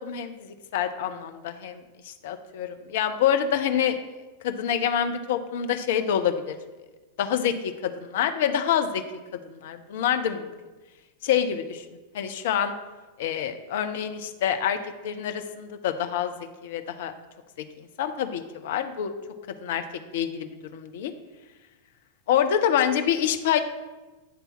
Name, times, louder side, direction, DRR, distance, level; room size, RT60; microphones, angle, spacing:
voice 1, 0.0-4.0 4.4-6.5 7.2-9.0 9.5-10.5 11.2-11.8 12.1-12.7 13.2-14.8 15.0-16.3 16.6-17.1 18.0-19.1 19.6-19.8 20.1-21.1 22.3-23.6, left 9 dB, 55° left, 8 dB, 0.6 m, -26 dB
9.3 x 3.4 x 5.8 m, 1.2 s
figure-of-eight pair, 90°, 0 cm